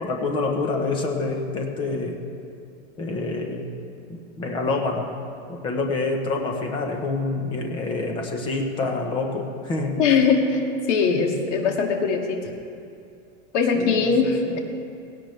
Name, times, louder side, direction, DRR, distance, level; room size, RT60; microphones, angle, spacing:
voice 1, 0.0-2.2 3.0-3.7 4.1-5.1 5.5-10.0 13.7-14.6, left 3 dB, 10° left, 2 dB, 0.9 m, -27 dB
voice 2, 10.0-10.6 10.9-12.4 13.5-14.6, left 5 dB, 60° left, 2 dB, 2.2 m, -21 dB
17.5 x 17.0 x 3.3 m, 2.5 s
supercardioid pair, 180°, 40 cm